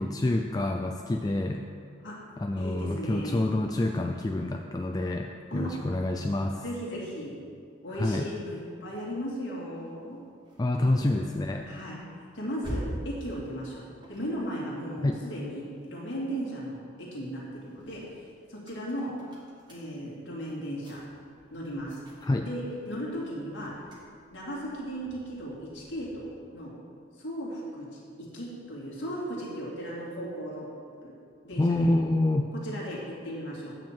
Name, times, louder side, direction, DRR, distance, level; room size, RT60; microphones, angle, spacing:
voice 1, 0.0-1.7 2.4-6.6 7.9-8.3 10.6-11.7 15.0-15.2 22.2-22.5 31.6-32.5, left 2 dB, 20° left, 3 dB, 0.3 m, -27 dB
voice 2, 2.6-3.4 5.5-5.7 6.6-7.4 7.8-10.2 10.7-10.9 11.6-12.0 12.3-18.0 18.5-19.1 19.7-21.0 21.5-22.0 22.4-23.7 24.3-26.7 27.2-30.7 31.0-31.1 31.4-31.9 32.6-33.7, equal, 60° left, -5 dB, 2.3 m, -36 dB
sound 1, 9.8-16.3 16.7-26.5, equal, 20° right, 1.5 m, -46 dB
9.0 x 4.4 x 7.4 m, 2.2 s
head